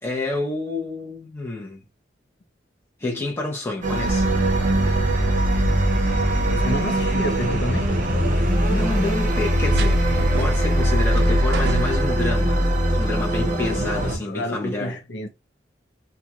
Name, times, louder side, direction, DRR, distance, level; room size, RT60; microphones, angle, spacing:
voice 1, 0.0-1.8 3.0-4.3 8.4-10.0 10.4-12.7 13.0-15.0, left 2 dB, 15° left, 0.8 m, -28 dB
sound 1, 3.8-14.2, equal, 45° right, 0.7 m, -21 dB
sound 2, 4.0-12.0, right 3 dB, 60° right, 0.3 m, -29 dB
voice 2, 6.5-7.9 13.7-15.3, equal, 85° left, 0.7 m, -30 dB
2.6 x 2.3 x 2.9 m
head